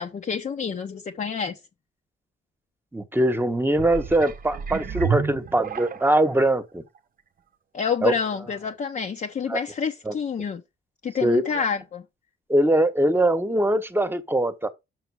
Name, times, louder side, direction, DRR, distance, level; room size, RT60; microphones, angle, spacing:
voice 1, 0.0-1.6 7.7-10.6 11.0-12.0, left 6 dB, 40° left, 0.9 m, -28 dB
voice 2, 2.9-6.8 8.0-8.1 9.5-9.6 10.1-10.2 11.2-11.4 12.5-14.7, right 1 dB, 10° right, 1.2 m, -22 dB
sound 1, 3.7-6.3 7.0-7.1, right 7 dB, 45° right, 0.8 m, -30 dB
6.4 x 5.9 x 4.8 m
cardioid pair, 90°, 20 cm